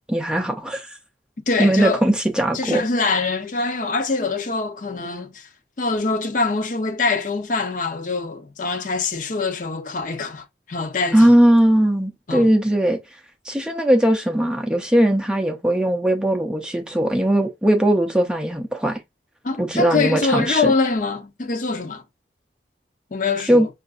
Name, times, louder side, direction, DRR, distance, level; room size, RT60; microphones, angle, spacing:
voice 1, 0.1-0.9 1.6-2.8 11.1-13.0 13.5-19.0 19.6-20.7 23.5-23.7, right 1 dB, 5° right, 0.5 m, -19 dB
voice 2, 1.5-2.0 2.5-5.5 5.8-11.3 12.3-12.5 19.4-22.0 23.1-23.7, left 3 dB, 45° left, 0.6 m, -24 dB
5.5 x 2.5 x 2.4 m
head